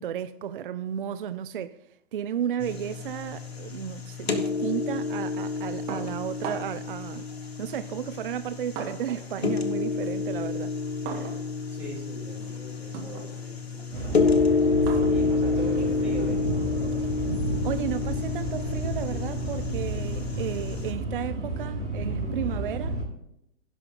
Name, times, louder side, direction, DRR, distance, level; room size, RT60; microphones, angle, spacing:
voice 1, 0.0-1.8 2.1-7.3 7.6-10.7 11.1-11.4 14.9-15.3 17.0-17.1 17.6-23.0, right 9 dB, 50° right, 0.4 m, -33 dB
sound 1, 2.6-20.9, left 4 dB, 60° left, 1.2 m, -29 dB
sound 2, 5.9-6.9 7.8-9.3 9.7-17.0, right 6 dB, 25° right, 1.7 m, -41 dB
voice 2, 11.7-14.2 15.0-16.4, right 1 dB, 5° right, 4.4 m, -40 dB
sound 3, 13.9-23.0, right 1 dB, 80° right, 4.2 m, -31 dB
16.5 x 5.7 x 3.8 m
figure-of-eight pair, 115°, 35 cm